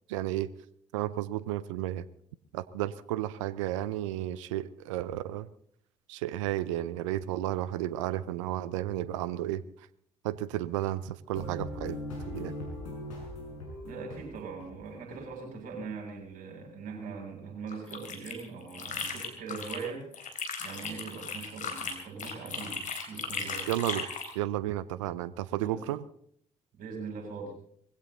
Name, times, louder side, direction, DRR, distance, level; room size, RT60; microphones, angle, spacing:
voice 1, 0.1-0.5 0.9-2.1 2.5-5.5 6.1-9.6 10.2-12.0 12.3-12.5 23.7-24.1 24.3-26.0, right 14 dB, 80° right, 18 dB, 0.6 m, -32 dB
sound 1, 11.3-15.7, left 1 dB, 80° left, 5.4 m, -41 dB
voice 2, 13.8-22.8 23.1-23.7 25.6-25.8 26.8-27.5, right 5 dB, 60° right, 0 dB, 7.8 m, -41 dB
sound 2, 17.7-19.9 20.1-24.3, left 5 dB, 55° left, 3.5 m, -37 dB
21.0 x 16.0 x 4.0 m, 0.66 s
figure-of-eight pair, 45°, 16 cm